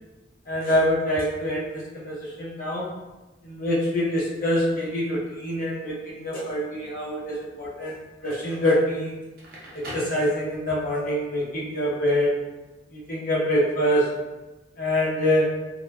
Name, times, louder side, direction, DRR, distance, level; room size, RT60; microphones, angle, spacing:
voice 1, 0.5-2.9 3.4-9.1 9.7-12.4 12.9-14.1 14.8-15.6, equal, 45° left, -6 dB, 0.7 m, -25 dB
Crackle, 9.2-10.9, equal, 50° right, 0.7 m, -41 dB
3.1 x 2.2 x 2.2 m, 1.1 s
head